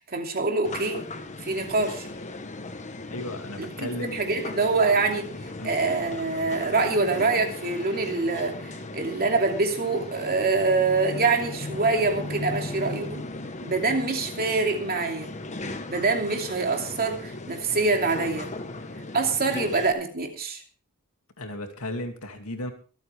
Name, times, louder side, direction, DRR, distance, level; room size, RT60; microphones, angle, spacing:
voice 1, 0.1-1.0 1.4-2.1 3.6-5.3 5.6-13.2 13.6-15.3 15.9-18.5 19.1-20.6, right 3 dB, 45° right, 3 dB, 2.7 m, -25 dB
sound 1, 0.6-19.9, left 2 dB, 35° left, 1.2 m, -37 dB
voice 2, 3.1-4.2 5.6-5.7 21.4-22.7, left 1 dB, 70° left, 5 dB, 2.5 m, -34 dB
24.5 x 9.1 x 3.5 m, 0.38 s
head